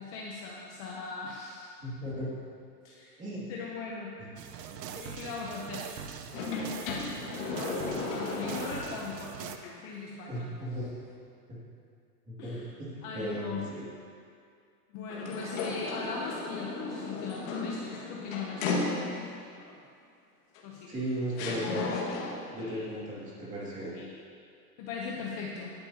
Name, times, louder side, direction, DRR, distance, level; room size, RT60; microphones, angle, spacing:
voice 1, 0.0-1.7 2.8-3.2 3.5-4.1 4.9-5.9 6.4-7.1 8.1-10.5 12.4-12.6 13.0-13.7 14.9-19.8 20.6-21.0 21.4-21.5 22.6-22.9 23.9-24.1 24.8-25.7, left 4 dB, 30° left, -2 dB, 0.8 m, -40 dB
voice 2, 1.8-2.3 3.2-3.5 10.3-10.9 11.5-11.6 12.3-13.8 20.9-21.9 22.5-23.9, right 1 dB, 15° right, -6 dB, 2.4 m, -36 dB
sound 1, 4.4-9.6, right 8 dB, 80° right, 0.9 m, -42 dB
sound 2, 6.3-9.2 9.6-9.7 15.1-19.4 20.6-20.7 21.4-22.5, left 3 dB, 50° left, 1.9 m, -35 dB
17.0 x 10.5 x 2.9 m, 2.4 s
supercardioid pair, 160°, 48 cm